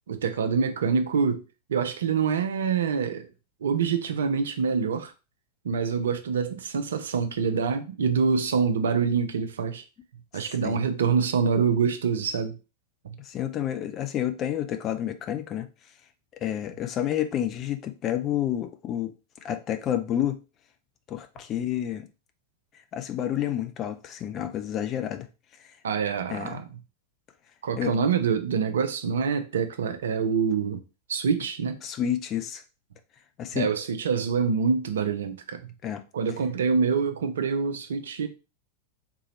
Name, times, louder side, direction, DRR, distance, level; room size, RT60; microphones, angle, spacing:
voice 1, 0.1-1.4 1.7-3.3 3.6-5.1 5.6-9.8 10.3-12.5 25.8-26.7 27.6-30.8 31.1-31.8 33.5-35.7 36.1-38.3, right 6 dB, 65° right, 0.5 m, -25 dB
voice 2, 10.3-10.9 13.2-15.7 16.4-19.1 19.4-20.4 21.1-22.1 22.9-25.3 25.6-25.7 26.3-26.6 27.8-28.0 31.8-32.6 33.4-33.7 35.8-36.0, left 10 dB, 30° left, 0.5 m, -29 dB
3.7 x 2.9 x 3.0 m
figure-of-eight pair, 90°, 0 cm